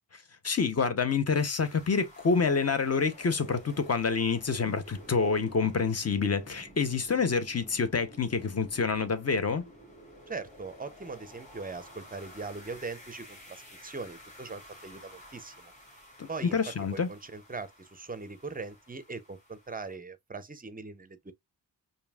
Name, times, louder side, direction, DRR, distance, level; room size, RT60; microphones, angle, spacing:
voice 1, 0.4-9.7 16.2-17.1, left 5 dB, 40° left, 0.7 m, -27 dB
sound 1, 1.4-20.0, equal, 20° left, 2.4 m, -52 dB
voice 2, 10.3-15.7 16.3-21.3, right 4 dB, 20° right, 0.5 m, -41 dB
5.1 x 2.7 x 2.3 m
wide cardioid pair, 150°, 40 cm